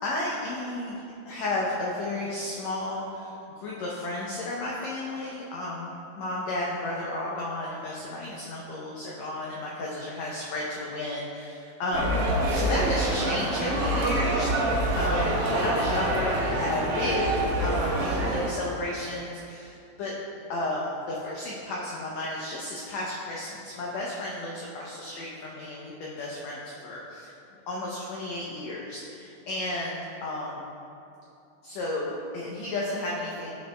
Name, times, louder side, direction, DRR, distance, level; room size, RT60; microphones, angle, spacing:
voice 1, 0.0-12.2 12.5-20.2 20.5-27.3 27.7-30.7 31.6-33.5, left 2 dB, 90° left, -4 dB, 1.5 m, -33 dB
sound 1, 11.9-18.5, right 1 dB, 65° right, 1.6 m, -26 dB
13.5 x 5.7 x 2.2 m, 2.7 s
omnidirectional pair, 4.1 m